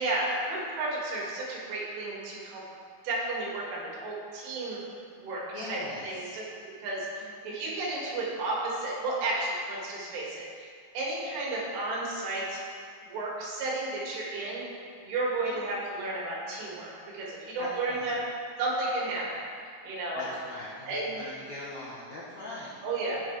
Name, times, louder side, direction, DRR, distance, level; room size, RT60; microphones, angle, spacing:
voice 1, 0.0-2.6 3.0-4.8 5.2-5.4 5.7-6.4 6.8-7.1 7.4-12.6 13.0-14.6 15.0-18.2 18.6-19.4 19.8-20.3 20.9-21.3 22.8-23.2, right 2 dB, 85° right, -5 dB, 4.8 m, -32 dB
voice 2, 5.5-6.3 7.2-7.3 15.4-15.6 17.6-18.1 20.1-22.7, left 1 dB, 85° left, -6 dB, 1.6 m, -41 dB
17.5 x 7.0 x 3.4 m, 2.1 s
omnidirectional pair, 5.5 m